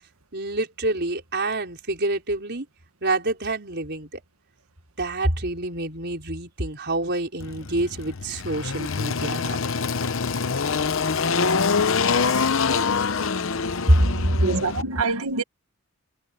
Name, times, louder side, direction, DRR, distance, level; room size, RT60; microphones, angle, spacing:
voice 1, 0.3-2.7 3.0-4.2 5.0-9.6 13.9-14.5, right 1 dB, 50° right, 5.1 m, -26 dB
Engine, 7.4-14.8, left 5 dB, 60° left, 0.8 m, -25 dB
voice 2, 14.4-15.4, right 3 dB, 90° right, 1.7 m, -25 dB
head